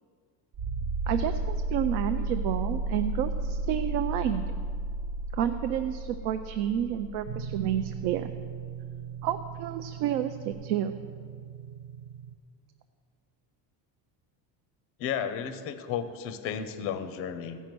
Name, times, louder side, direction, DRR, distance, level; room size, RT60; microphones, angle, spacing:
sound 1, 0.5-9.0 10.5-10.6, right 2 dB, 65° right, 1.1 m, -32 dB
voice 1, 1.1-4.5 5.3-8.3 9.2-10.9, right 10 dB, 85° right, 8 dB, 0.7 m, -30 dB
sound 2, 7.3-12.3, right 8 dB, 45° right, 0.5 m, -40 dB
voice 2, 15.0-17.6, left 8 dB, 30° left, 10 dB, 0.4 m, -33 dB
15.0 x 5.5 x 6.0 m, 2.1 s
cardioid pair, 175°, 48 cm